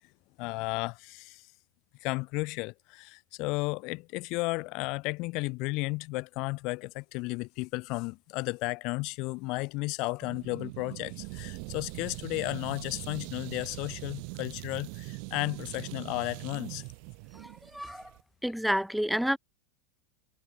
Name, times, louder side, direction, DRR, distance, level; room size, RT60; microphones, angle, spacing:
voice 1, 0.4-1.4 2.0-16.8, left 25 dB, 50° left, 3.3 m, -33 dB
sound 1, 10.2-18.2, right 40 dB or more, 55° right, 3.4 m, -42 dB
voice 2, 17.3-18.1 18.4-19.4, equal, ahead, 0.7 m, -30 dB
supercardioid pair, 140°, 0 cm